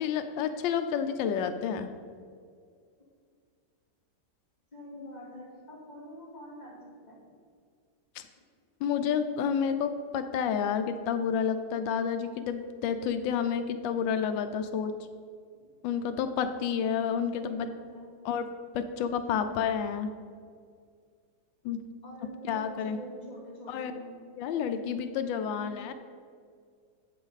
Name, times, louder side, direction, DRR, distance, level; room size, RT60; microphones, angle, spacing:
voice 1, 0.0-1.9 8.2-8.3 8.8-14.9 15.8-17.7 18.2-18.5 18.7-20.1 21.6-21.8 22.5-23.0 23.7-23.9 24.4-25.9, left 7 dB, 85° left, 8 dB, 1.3 m, -30 dB
voice 2, 4.7-7.2 17.3-18.1 19.2-19.4 22.0-24.2 25.6-25.9, left 1 dB, 20° left, -6 dB, 2.6 m, -45 dB
9.2 x 7.4 x 4.0 m, 2.1 s
omnidirectional pair, 2.0 m